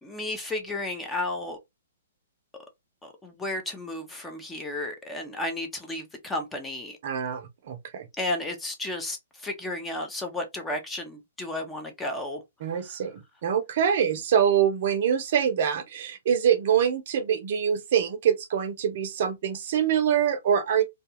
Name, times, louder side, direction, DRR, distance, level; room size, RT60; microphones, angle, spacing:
voice 1, 0.0-1.6 3.0-7.0 8.2-12.4 12.7-13.0, left 2 dB, 10° left, 0.7 m, -33 dB
voice 2, 7.0-8.1 12.6-20.8, right 8 dB, 55° right, 0.6 m, -25 dB
2.3 x 2.3 x 2.8 m
hypercardioid pair, 130°, 0 cm